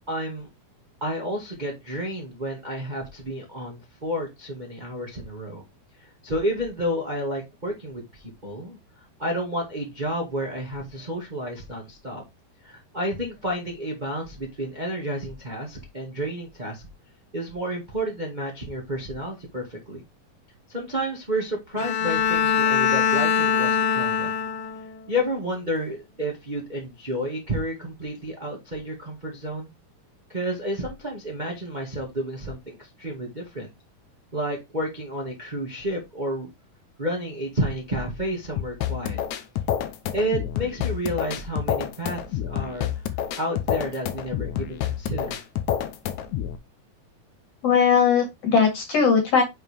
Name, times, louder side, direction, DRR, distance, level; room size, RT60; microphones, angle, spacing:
voice 1, 0.1-0.5 1.0-5.6 6.2-8.8 9.2-12.2 12.6-16.8 17.3-20.0 20.7-24.4 25.1-29.7 30.3-33.7 34.3-36.5 37.0-39.2 40.1-42.9 43.4-45.4, equal, 40° right, 0 dB, 0.6 m, -30 dB
Bowed string instrument, 21.8-25.0, left 7 dB, 75° left, 2.4 m, -22 dB
sound 1, 38.6-46.6, left 11 dB, 90° left, 1.6 m, -28 dB
voice 2, 47.6-49.4, left 6 dB, 50° left, 4 dB, 2.4 m, -19 dB
7.5 x 5.0 x 3.5 m, 0.21 s
omnidirectional pair, 4.5 m